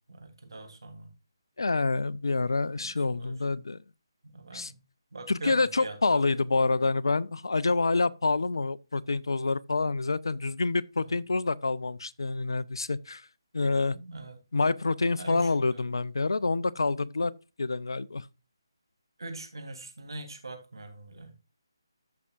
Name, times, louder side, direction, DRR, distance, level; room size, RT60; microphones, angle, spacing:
voice 1, 0.1-1.1 2.8-3.4 4.3-4.8 5.1-6.3 13.9-14.4 15.1-15.8 19.2-21.3, right 2 dB, 70° right, 3.1 m, -42 dB
voice 2, 1.6-3.8 4.5-4.7 5.3-13.2 13.5-14.0 14.5-17.3 17.6-18.3, left 3 dB, 70° left, 0.5 m, -27 dB
14.5 x 5.7 x 2.4 m
figure-of-eight pair, 155°, 2 cm